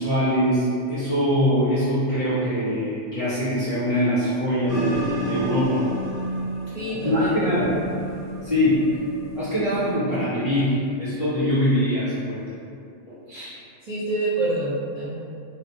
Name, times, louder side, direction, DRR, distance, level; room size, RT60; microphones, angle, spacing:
voice 1, 0.0-5.8 7.0-7.8 8.4-8.9 9.3-12.4 13.1-13.6, equal, 40° left, -14 dB, 0.5 m, -23 dB
sound 1, 4.7-10.0, right 1 dB, 65° right, 1.4 m, -31 dB
voice 2, 6.7-7.7 13.8-15.1, right 2 dB, 40° right, -14 dB, 0.6 m, -27 dB
2.5 x 2.1 x 2.9 m, 2.5 s
omnidirectional pair, 1.4 m